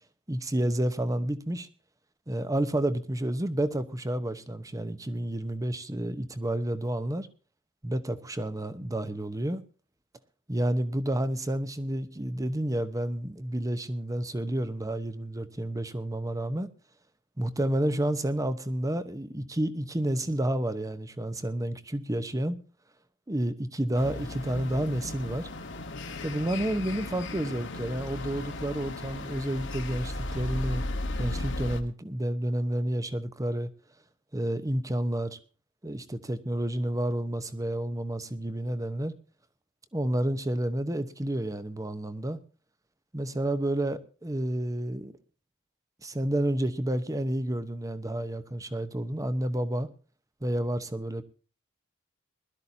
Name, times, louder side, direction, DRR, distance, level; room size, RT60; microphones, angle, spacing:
voice 1, 0.3-1.7 2.3-7.3 7.8-9.6 10.5-16.7 17.4-22.6 23.3-25.5 26.2-30.8 31.2-33.7 34.3-35.4 35.8-39.1 39.9-42.4 43.1-45.1 46.0-49.9 50.4-51.2, right 1 dB, 15° right, 1.0 m, -30 dB
sound 1, 23.9-31.8, left 2 dB, 65° left, 1.5 m, -36 dB
21.0 x 12.5 x 2.8 m
head